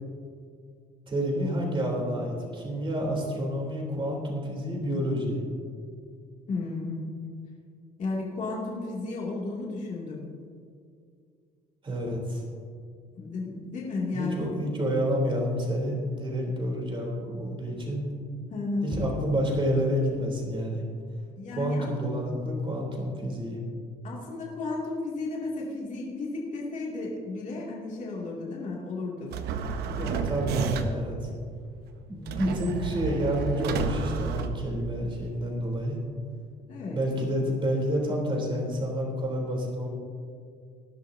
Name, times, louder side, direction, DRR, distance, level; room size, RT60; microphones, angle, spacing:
voice 1, 1.1-5.4 11.8-12.4 14.1-18.0 18.8-20.8 21.6-23.6 30.0-31.3 32.1-36.0 36.9-39.9, equal, 30° right, -1 dB, 3.5 m, -29 dB
voice 2, 6.5-7.0 8.0-10.3 13.1-14.5 18.5-18.9 21.4-22.2 24.0-29.4 29.8-30.3 36.7-37.0, left 3 dB, 45° left, -5 dB, 2.6 m, -33 dB
sound 1, 29.3-31.1 32.3-35.1, right 6 dB, 75° right, 0.9 m, -31 dB
19.5 x 11.0 x 2.8 m, 2.3 s
cardioid pair, 110°, 17 cm